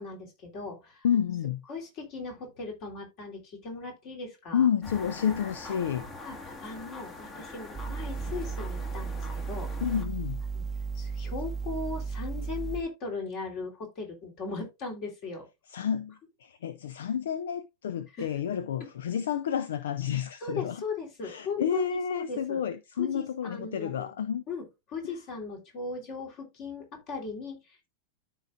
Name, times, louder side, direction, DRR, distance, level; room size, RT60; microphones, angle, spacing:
voice 1, 0.0-1.0 1.7-4.7 6.2-9.7 10.5-10.6 10.9-15.4 18.1-18.3 20.4-22.6 23.0-24.1 24.5-24.6 24.9-27.9, left 4 dB, 40° left, 3.2 m, -38 dB
voice 2, 1.0-1.6 4.5-6.1 9.8-10.4 15.7-20.8 21.2-24.4, left 8 dB, 60° left, 0.5 m, -30 dB
sound 1, 4.8-10.0, left 3 dB, 25° left, 1.6 m, -43 dB
sound 2, 7.7-12.8, right 5 dB, 15° right, 0.8 m, -34 dB
13.0 x 4.6 x 2.5 m
figure-of-eight pair, 90°, 0 cm